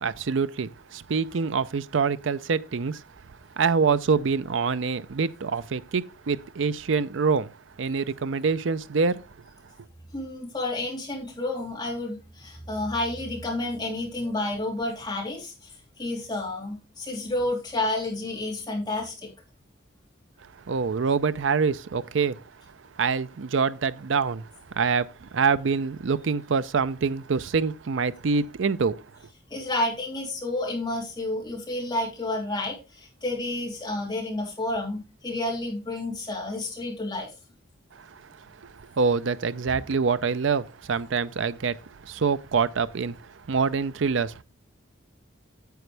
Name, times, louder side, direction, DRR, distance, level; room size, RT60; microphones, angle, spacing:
voice 1, 0.0-3.0 3.6-7.5 7.8-9.2 20.7-22.4 23.0-24.5 24.7-29.0 38.1-38.2 38.6-41.8 42.0-43.2 43.5-44.4, right 5 dB, 70° right, 0.5 m, -25 dB
voice 2, 10.1-19.3 29.5-37.3, left 2 dB, 20° left, 3.2 m, -30 dB
9.4 x 7.8 x 3.3 m
head